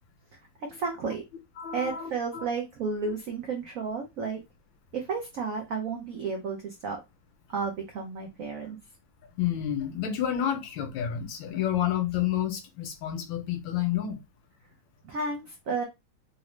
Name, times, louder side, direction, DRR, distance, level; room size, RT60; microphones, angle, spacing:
voice 1, 0.7-1.2 1.7-4.4 4.9-7.0 7.5-8.8 15.0-15.8, right 4 dB, 85° right, 0.7 m, -32 dB
voice 2, 1.6-2.5 9.4-14.2, left 10 dB, 75° left, 1.3 m, -30 dB
3.7 x 2.1 x 3.1 m
omnidirectional pair, 2.3 m